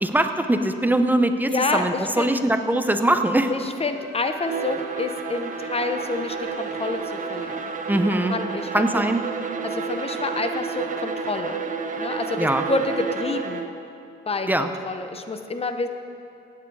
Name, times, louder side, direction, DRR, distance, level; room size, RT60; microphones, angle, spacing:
voice 1, 0.0-3.5 7.9-8.3 8.7-9.2 12.4-12.7 14.5-14.7, right 1 dB, 10° right, 7 dB, 0.7 m, -21 dB
voice 2, 1.5-1.8 2.2-2.3 3.5-7.7 8.3-9.0 9.6-11.6 12.0-13.6 14.3-15.9, left 3 dB, 30° left, 7 dB, 0.8 m, -28 dB
Bowed string instrument, 3.7-8.2, right 4 dB, 85° right, 1.4 m, -44 dB
Bowed string instrument 2, 4.3-13.8, right 5 dB, 40° right, 1.0 m, -30 dB
15.5 x 9.7 x 4.8 m, 2.6 s
cardioid pair, 90°, 20 cm